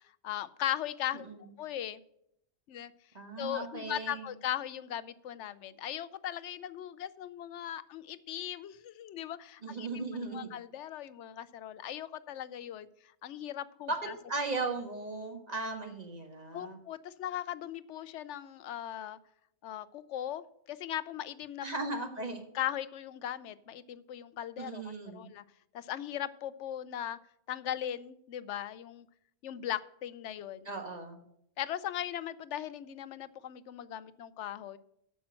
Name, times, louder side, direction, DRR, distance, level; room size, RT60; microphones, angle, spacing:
voice 1, 0.2-1.3 1.6-2.0 2.7-2.9 3.4-12.9 13.2-14.1 16.5-19.2 19.6-21.7 22.5-25.4 25.7-27.2 27.5-29.1 29.4-30.7 31.6-34.8, left 11 dB, 85° left, 16 dB, 0.9 m, -38 dB
voice 2, 3.1-4.3 9.6-10.5 13.9-14.0 14.3-16.8 21.6-22.4 24.6-25.3 30.6-31.2, right 3 dB, 35° right, 4 dB, 1.6 m, -37 dB
8.6 x 7.0 x 7.5 m, 0.73 s
omnidirectional pair, 1.2 m